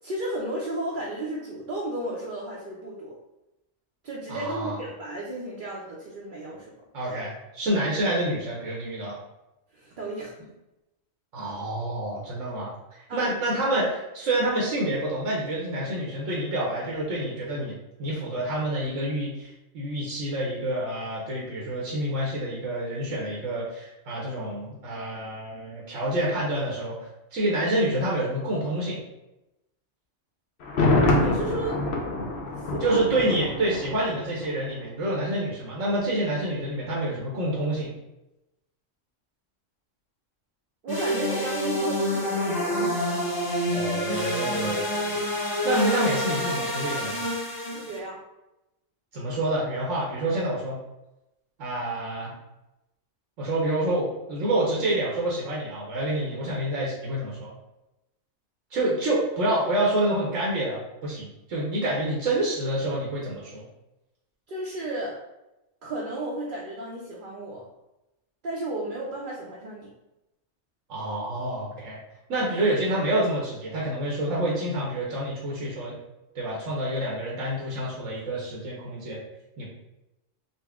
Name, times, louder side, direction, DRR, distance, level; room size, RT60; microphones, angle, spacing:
voice 1, 0.0-3.1 4.0-6.7 7.0-7.2 9.7-10.3 13.1-13.3 31.1-31.8 32.7-33.0 40.8-43.1 47.7-48.2 64.5-65.2 65.8-67.6 68.4-69.9, right 1 dB, 55° right, -4 dB, 0.7 m, -33 dB
voice 2, 4.3-4.7 6.9-9.2 11.3-12.7 13.1-27.0 27.3-29.0 32.8-37.9 43.7-45.2 45.6-47.2 49.1-50.8 51.6-52.3 53.4-57.5 58.7-63.6 70.9-72.0 72.3-75.9 76.3-79.2 79.6-79.7, right 1 dB, 85° right, -5 dB, 1.2 m, -28 dB
Thunder, 30.6-34.5 34.8-34.9, left 2 dB, 60° left, 0.9 m, -26 dB
sound 1, 40.9-48.0, equal, 20° left, 0.8 m, -27 dB
4.2 x 2.0 x 3.5 m, 0.95 s
omnidirectional pair, 1.3 m